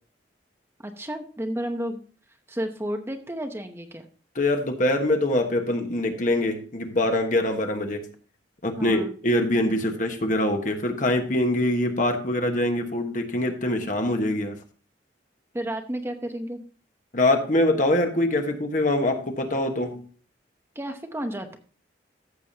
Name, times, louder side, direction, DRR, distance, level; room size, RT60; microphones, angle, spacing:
voice 1, 0.8-2.0 2.5-4.1 8.8-9.1 15.5-16.6 20.7-21.6, right 1 dB, 15° right, 5 dB, 0.8 m, -32 dB
voice 2, 4.3-8.0 8.6-14.6 17.1-20.0, left 1 dB, 45° left, 4 dB, 1.3 m, -24 dB
14.5 x 7.0 x 2.8 m, 0.40 s
head